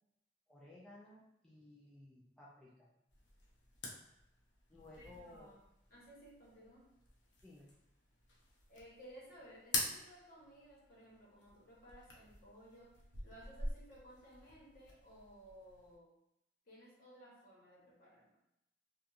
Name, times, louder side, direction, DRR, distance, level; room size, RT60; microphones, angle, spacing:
voice 1, 0.5-2.9 4.7-5.5 7.4-7.8, left 2 dB, 5° left, -7 dB, 0.4 m, -57 dB
sound 1, 3.1-16.0, left 2 dB, 90° left, 0.6 m, -47 dB
voice 2, 5.0-5.6 5.9-6.9 8.7-16.1 16.7-18.4, equal, 50° left, -5 dB, 1.0 m, -58 dB
2.8 x 2.3 x 2.4 m, 0.84 s
head